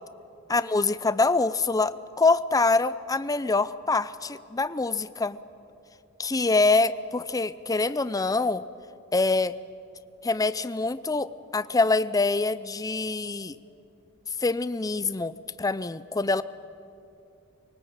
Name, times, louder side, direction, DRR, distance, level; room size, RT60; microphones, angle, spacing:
voice 1, 0.5-5.4 6.2-8.6 9.1-9.5 10.2-13.6 14.4-16.4, left 3 dB, 15° left, 15 dB, 0.5 m, -25 dB
23.5 x 19.5 x 8.8 m, 2.8 s
head